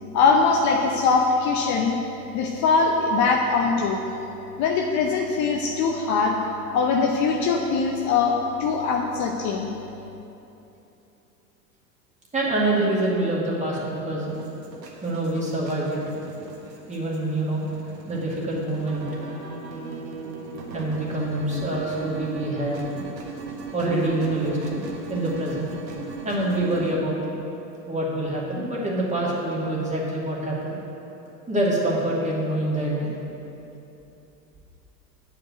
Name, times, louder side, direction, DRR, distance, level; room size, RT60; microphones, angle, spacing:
voice 1, 0.1-2.0 2.3-4.0 4.6-6.4 6.7-9.7, left 4 dB, 35° left, 1 dB, 0.8 m, -22 dB
voice 2, 12.3-14.3 15.0-16.0 16.9-17.6 18.1-19.1 20.7-22.9 23.7-25.7 26.2-27.2 27.9-30.7 31.5-33.2, right 1 dB, 15° right, -5 dB, 2.3 m, -26 dB
sound 1, 14.3-26.9, right 4 dB, 85° right, 1.5 m, -38 dB
8.7 x 5.2 x 7.8 m, 2.9 s
hypercardioid pair, 95°, 49 cm